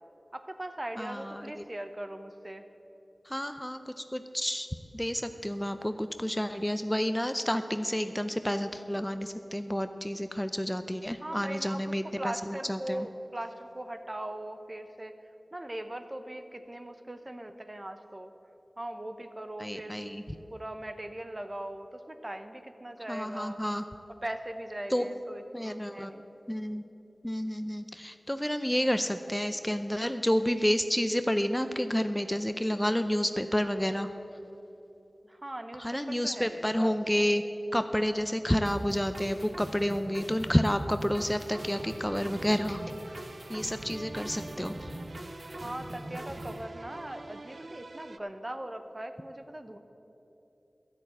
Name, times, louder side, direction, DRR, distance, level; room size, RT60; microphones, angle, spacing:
voice 1, 0.3-2.6 11.2-15.1 15.5-18.3 18.8-20.1 20.5-23.6 24.2-26.3 35.2-36.9 45.5-49.8, right 1 dB, 35° right, 8 dB, 0.8 m, -40 dB
voice 2, 1.0-1.6 3.3-4.7 4.9-13.1 19.6-20.2 23.1-23.8 24.9-25.1 25.5-26.2 26.5-26.8 27.2-34.1 35.8-37.4 37.7-42.8 43.1-44.9, equal, 10° left, 9 dB, 0.5 m, -30 dB
sound 1, 38.6-46.6, right 1 dB, 50° right, 1.2 m, -43 dB
sound 2, 41.5-48.2, right 2 dB, 70° right, 0.4 m, -46 dB
12.0 x 6.6 x 8.8 m, 3.0 s
cardioid pair, 40°, 0 cm